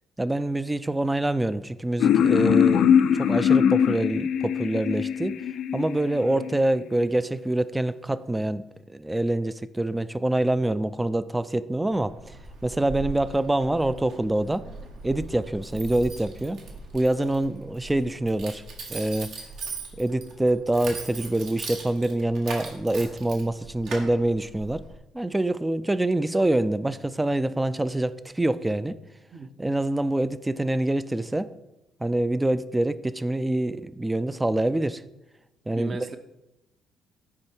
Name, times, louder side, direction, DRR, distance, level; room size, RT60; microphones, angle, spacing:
voice 1, 0.2-5.4 5.7-12.4 12.6-14.6 15.0-16.6 16.9-18.6 18.9-19.4 20.0-24.8 25.1-29.0 29.6-31.5 32.0-35.0 35.7-36.1, right 1 dB, 10° right, 15 dB, 0.3 m, -25 dB
sound 1, 2.0-6.6, left 8 dB, 70° left, 0.4 m, -21 dB
Keys jangling, 11.9-24.9, right 3 dB, 75° right, 1.7 m, -40 dB
voice 2, 35.7-36.2, right 4 dB, 40° right, 9 dB, 0.8 m, -37 dB
9.8 x 4.5 x 4.4 m, 0.97 s
cardioid pair, 100°, 0 cm